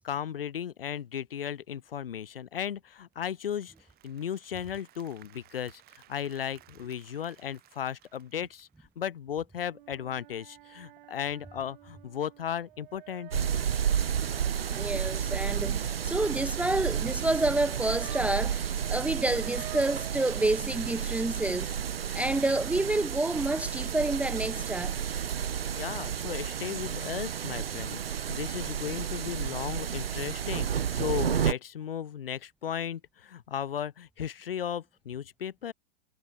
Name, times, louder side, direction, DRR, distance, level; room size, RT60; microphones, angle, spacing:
voice 1, 0.0-3.7 4.0-8.7 8.9-13.3 25.7-35.7, left 9 dB, 65° left, 3.4 m, -35 dB
Applause / Crowd, 3.1-9.2, right 15 dB, 30° right, 6.0 m, -60 dB
sound 1, 9.6-18.5 18.7-20.2, right 15 dB, 50° right, 3.2 m, -50 dB
sound 2, 13.3-31.5, right 8 dB, 70° right, 1.3 m, -31 dB
voice 2, 14.7-21.7 22.1-24.9, right 2 dB, 5° right, 0.7 m, -29 dB
figure-of-eight pair, 105°, 31 cm